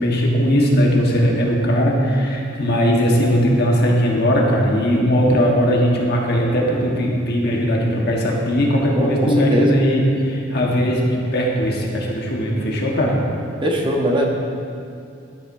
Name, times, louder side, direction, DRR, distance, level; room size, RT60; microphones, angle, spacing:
voice 1, 0.0-13.2, equal, 55° left, -1 dB, 1.3 m, -18 dB
voice 2, 8.9-9.8 13.6-14.2, equal, 25° right, 0 dB, 0.8 m, -21 dB
12.0 x 7.7 x 2.6 m, 2.4 s
head